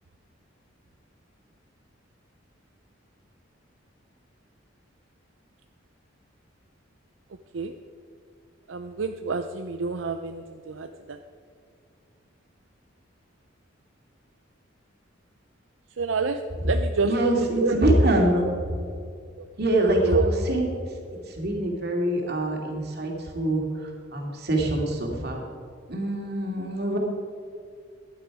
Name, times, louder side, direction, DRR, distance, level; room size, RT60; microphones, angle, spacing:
voice 1, 8.7-11.2 16.0-16.4 16.7-17.1 17.5-17.8 19.4-19.5 20.0-20.3, right 4 dB, 80° right, 7 dB, 0.6 m, -28 dB
voice 2, 17.0-18.4 19.6-20.7 21.4-23.6 24.1-25.4 25.9-27.0, right 1 dB, 55° right, 0 dB, 2.6 m, -24 dB
15.5 x 11.5 x 4.9 m, 2.3 s
head